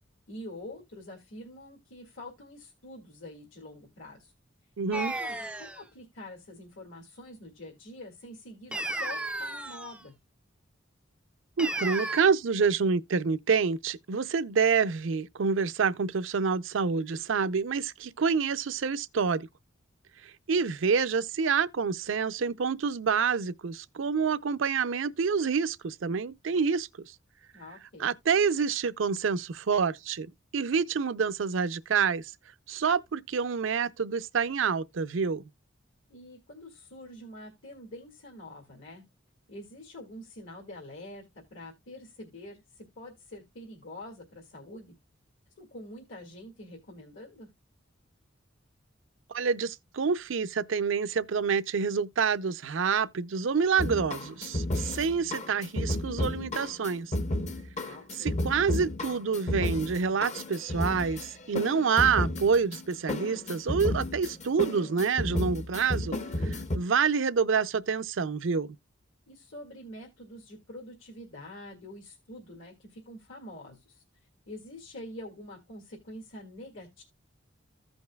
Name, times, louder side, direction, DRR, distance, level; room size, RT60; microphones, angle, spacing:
voice 1, 0.3-4.3 4.9-10.1 27.5-28.1 36.1-39.0 39.5-44.9 45.6-47.5 57.9-58.4 69.3-77.0, left 1 dB, 70° left, 2.0 m, -46 dB
voice 2, 4.8-5.1 11.6-19.5 20.5-26.9 28.0-30.3 30.5-32.2 32.7-35.4 49.3-57.1 58.2-66.2 66.5-68.8, right 5 dB, 70° right, 0.5 m, -27 dB
sound 1, 4.9-5.8 8.7-10.0 11.6-12.2, right 2 dB, 5° right, 0.4 m, -33 dB
sound 2, 53.8-66.8, left 1 dB, 35° left, 0.7 m, -32 dB
15.0 x 5.3 x 2.2 m
head